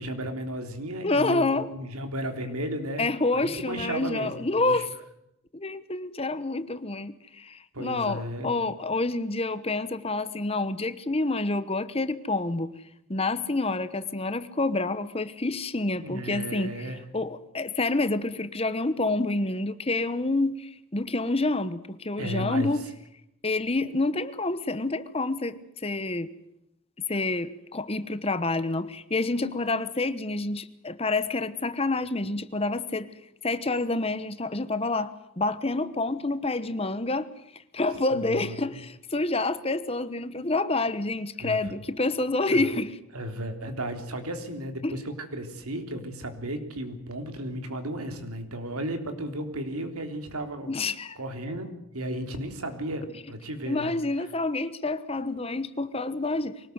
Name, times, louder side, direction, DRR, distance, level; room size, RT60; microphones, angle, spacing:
voice 1, 0.0-4.8 7.7-8.6 16.0-17.0 22.2-22.7 38.1-38.8 41.4-41.7 42.5-42.7 43.1-50.7 51.2-54.0, right 1 dB, 90° right, 3.6 m, -34 dB
voice 2, 1.0-1.7 3.0-4.9 5.5-12.7 13.1-22.8 23.4-26.3 27.1-33.1 33.4-37.3 37.5-42.9 44.8-45.0 50.7-51.2 53.7-56.7, left 2 dB, 25° left, 1.0 m, -28 dB
24.0 x 19.0 x 8.0 m
head